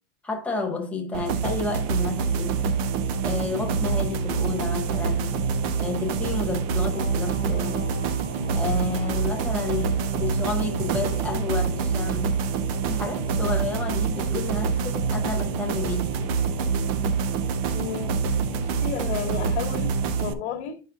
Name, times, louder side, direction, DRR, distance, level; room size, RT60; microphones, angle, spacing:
voice 1, 0.2-2.6 3.2-5.4 5.8-7.8 8.5-12.4 12.9-16.3, left 3 dB, 5° left, 0.7 m, -31 dB
sound 1, 1.1-20.3, right 5 dB, 35° right, 0.5 m, -26 dB
sound 2, 6.9-19.5, left 4 dB, 25° left, 1.3 m, -45 dB
voice 2, 17.3-18.2 18.5-20.8, left 8 dB, 80° left, 1.3 m, -33 dB
9.8 x 5.4 x 2.3 m
supercardioid pair, 165°, 34 cm